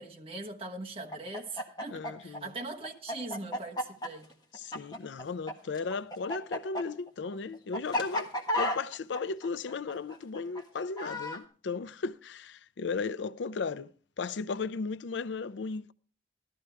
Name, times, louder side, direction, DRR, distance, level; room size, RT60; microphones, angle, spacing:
voice 1, 0.0-4.3, right 2 dB, 30° right, 1.3 m, -41 dB
Chicken rooster, 1.1-5.5 5.8-11.4, left 1 dB, 25° left, 1.4 m, -33 dB
voice 2, 1.9-2.5 4.5-13.9 14.2-15.9, left 4 dB, 90° left, 0.5 m, -36 dB
13.5 x 12.5 x 3.4 m
head